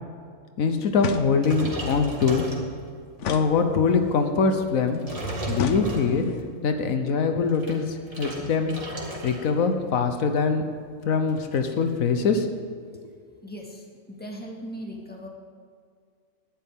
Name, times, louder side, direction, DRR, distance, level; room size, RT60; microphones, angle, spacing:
voice 1, 0.6-2.5 3.3-5.0 5.5-6.3 6.6-8.7 9.2-10.6 11.1-12.5, left 5 dB, 85° left, 6 dB, 1.4 m, -23 dB
sound 1, 1.0-1.7 3.2-4.2 5.5-6.4, left 7 dB, 65° left, 1.0 m, -32 dB
sound 2, 1.4-3.1 3.7-3.9 4.7-6.5 7.3-9.6 9.8-10.1 10.5-10.6 10.8-11.9, right 1 dB, 25° right, 2.1 m, -36 dB
voice 2, 13.4-15.3, equal, 5° left, -1 dB, 1.8 m, -38 dB
18.5 x 11.5 x 3.7 m, 2.1 s
omnidirectional pair, 1.4 m